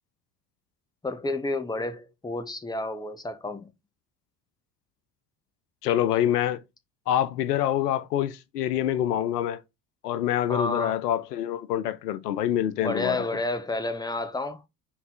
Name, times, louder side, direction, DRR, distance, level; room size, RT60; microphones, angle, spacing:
voice 1, 1.0-3.7 10.5-11.0 12.8-14.6, left 2 dB, 10° left, 1.1 m, -30 dB
voice 2, 5.8-6.6 7.1-9.6 10.0-13.2, left 11 dB, 75° left, 0.7 m, -26 dB
6.0 x 4.0 x 3.9 m
figure-of-eight pair, 60°, 48 cm